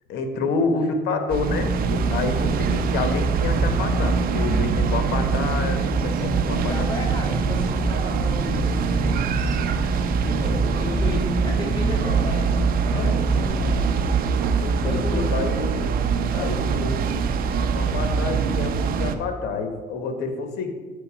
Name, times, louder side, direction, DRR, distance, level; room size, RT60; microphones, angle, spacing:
voice 1, 0.1-6.7 14.6-15.9 16.3-17.2 17.6-20.7, left 4 dB, 75° left, 7 dB, 1.1 m, -28 dB
sound 1, 1.3-19.2, right 5 dB, 60° right, 0.6 m, -24 dB
sound 2, 1.4-13.5, right 1 dB, 15° right, 1.8 m, -29 dB
voice 2, 6.5-9.4 10.2-14.2 14.8-15.4 16.3-16.6, left 1 dB, 25° left, -3 dB, 2.4 m, -33 dB
6.7 x 4.8 x 5.7 m, 1.3 s
cardioid pair, 110°, 17 cm